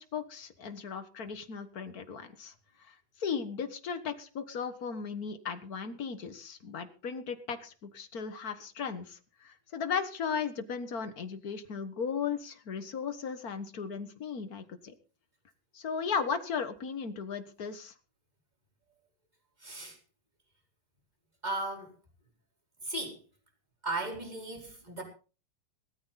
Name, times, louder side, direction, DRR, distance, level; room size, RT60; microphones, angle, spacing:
voice 1, 0.0-2.5 2.8-14.9 15.7-17.9, left 6 dB, 45° left, 1.2 m, -36 dB
voice 2, 19.6-20.0 21.4-21.9 22.8-23.2 23.8-25.0, right 2 dB, 15° right, 4.2 m, -36 dB
18.5 x 13.5 x 4.1 m
omnidirectional pair, 3.5 m